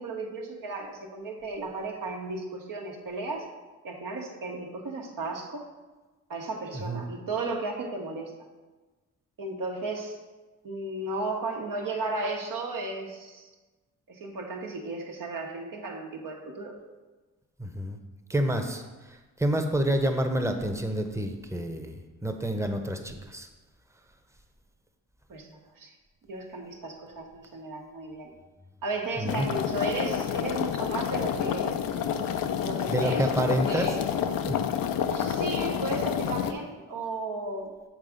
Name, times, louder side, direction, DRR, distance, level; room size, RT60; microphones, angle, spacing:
voice 1, 0.0-3.5 3.8-5.6 6.3-8.3 9.4-10.2 10.6-13.5 14.1-16.7 25.3-25.9 26.3-28.3 28.8-31.8 32.6-34.1 35.1-37.7, right 2 dB, 70° right, 1 dB, 1.3 m, -34 dB
voice 2, 17.6-18.0 18.3-18.8 19.1-23.5 29.2-29.5 32.9-33.9 34.5-34.7, right 1 dB, 10° right, 5 dB, 0.9 m, -28 dB
sound 1, 29.3-36.5, left 8 dB, 80° left, 0.6 m, -29 dB
7.3 x 3.6 x 5.2 m, 1.2 s
cardioid pair, 60°, 34 cm